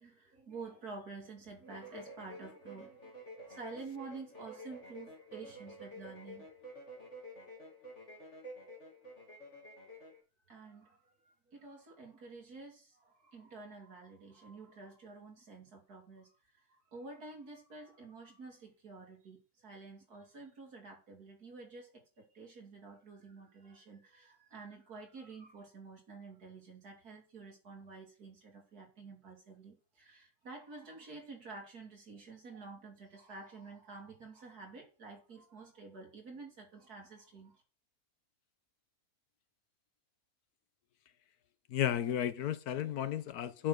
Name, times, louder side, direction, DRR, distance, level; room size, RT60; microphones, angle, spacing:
voice 1, 0.0-3.1 3.4-6.5 10.5-11.0 11.2-16.3 16.5-37.6, right 3 dB, 80° right, 3.2 m, -50 dB
sound 1, 1.6-10.2, equal, 50° left, 3.4 m, -50 dB
voice 2, 41.7-43.7, left 10 dB, 90° left, 1.3 m, -33 dB
7.9 x 6.3 x 6.5 m
omnidirectional pair, 1.6 m